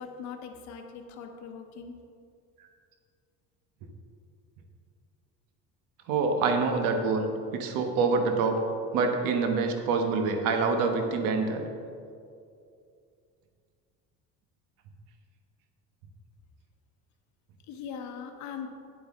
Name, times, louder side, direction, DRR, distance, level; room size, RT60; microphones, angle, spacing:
voice 1, 0.0-2.0 17.7-18.7, left 6 dB, 60° left, 5 dB, 0.9 m, -40 dB
voice 2, 6.1-8.6 8.9-11.6, right 4 dB, 75° right, 5 dB, 1.1 m, -26 dB
9.6 x 8.0 x 3.6 m, 2.4 s
cardioid pair, 170°, 32 cm